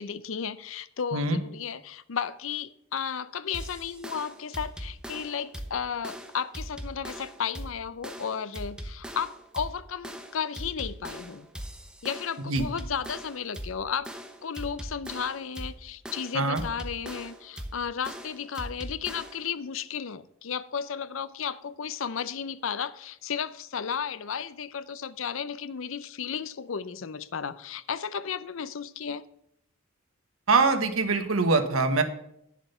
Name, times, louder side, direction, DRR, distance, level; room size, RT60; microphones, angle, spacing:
voice 1, 0.0-11.5 12.0-14.1 14.4-29.2, left 7 dB, 65° left, 0.5 m, -34 dB
sound 1, 3.5-19.5, equal, 5° right, 0.8 m, -40 dB
voice 2, 30.5-32.0, right 3 dB, 80° right, 1.2 m, -23 dB
10.0 x 7.3 x 5.6 m
head